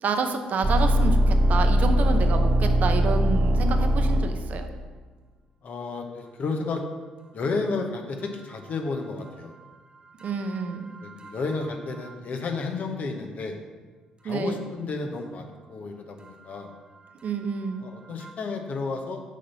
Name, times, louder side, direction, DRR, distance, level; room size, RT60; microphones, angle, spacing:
voice 1, 0.0-4.7 10.2-11.0 14.2-14.6 17.2-17.9, right 4 dB, 55° right, 6 dB, 0.8 m, -29 dB
sound 1, 0.6-4.7 10.2-11.7 12.0-12.1 18.2-18.3, equal, 30° right, 0.7 m, -22 dB
voice 2, 5.6-6.8 7.3-9.6 11.0-13.6 14.2-16.7 17.8-19.2, left 3 dB, 55° left, 4 dB, 1.0 m, -32 dB
6.3 x 4.1 x 5.6 m, 1.4 s
hypercardioid pair, 55°, 3 cm